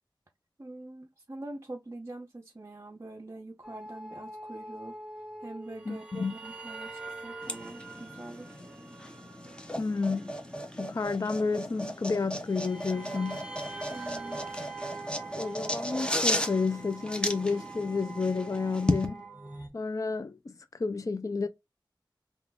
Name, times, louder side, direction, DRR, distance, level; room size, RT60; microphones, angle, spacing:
voice 1, 0.6-5.0 5.4-8.6 13.9-14.4, right 2 dB, 35° right, 0.5 m, -44 dB
sound 1, 3.6-19.7, right 3 dB, 10° right, 1.1 m, -44 dB
voice 2, 5.9-6.3 9.8-10.3 10.8-13.5 15.4-19.3 19.7-20.5 20.8-21.5, left 4 dB, 40° left, 0.4 m, -31 dB
sound 2, 7.4-19.1, left 1 dB, 10° left, 0.8 m, -35 dB
3.8 x 2.4 x 3.3 m
wide cardioid pair, 60°, 8 cm